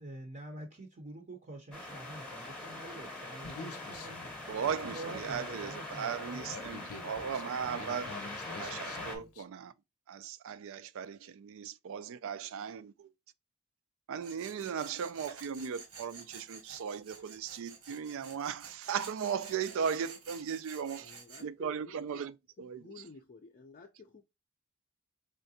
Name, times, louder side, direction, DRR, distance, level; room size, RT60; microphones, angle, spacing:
voice 1, 0.0-4.2 4.9-7.0, right 2 dB, 35° right, 0.7 m, -47 dB
sound 1, 1.7-9.2, left 2 dB, 5° left, 0.9 m, -43 dB
Human voice, 3.4-9.4, left 3 dB, 85° left, 0.7 m, -47 dB
voice 2, 4.5-8.2 8.6-9.7 10.1-13.1 14.1-21.1 21.4-23.0, right 7 dB, 65° right, 0.4 m, -37 dB
Tools, 14.2-21.4, right 5 dB, 85° right, 1.4 m, -51 dB
voice 3, 21.0-22.2 22.6-24.2, left 3 dB, 40° left, 0.5 m, -53 dB
3.7 x 3.3 x 2.7 m
head